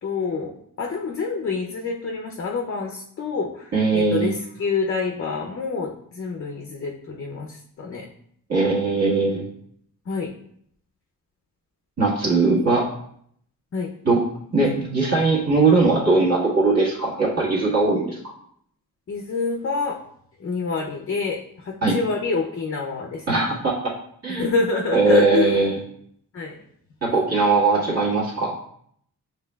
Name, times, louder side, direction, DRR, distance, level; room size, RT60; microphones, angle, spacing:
voice 1, 0.0-0.5 0.8-8.1 10.1-10.3 12.4-12.7 13.7-13.9 14.6-14.7 19.1-20.0 20.4-23.2 24.3-25.5 26.3-26.6, left 4 dB, 40° left, 1 dB, 0.5 m, -27 dB
voice 2, 3.7-4.3 8.5-9.4 12.0-12.9 14.0-14.2 14.5-18.2 21.8-22.0 23.3-23.7 24.2-24.4 24.9-25.8 27.0-28.5, right 3 dB, 45° right, -5 dB, 1.6 m, -20 dB
7.1 x 3.2 x 2.2 m, 0.67 s
wide cardioid pair, 125°, 37 cm